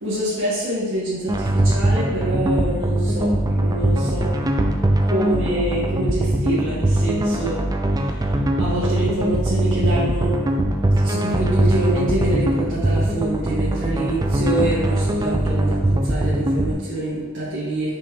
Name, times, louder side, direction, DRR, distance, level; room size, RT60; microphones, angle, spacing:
voice 1, 0.0-3.3 3.5-4.3 5.0-7.6 8.6-10.3 11.0-15.8 16.0-18.0, right 1 dB, 55° right, -10 dB, 1.9 m, -25 dB
sound 1, 1.3-16.7, right 1 dB, 15° right, 0.3 m, -21 dB
5.8 x 5.1 x 3.4 m, 1.2 s
head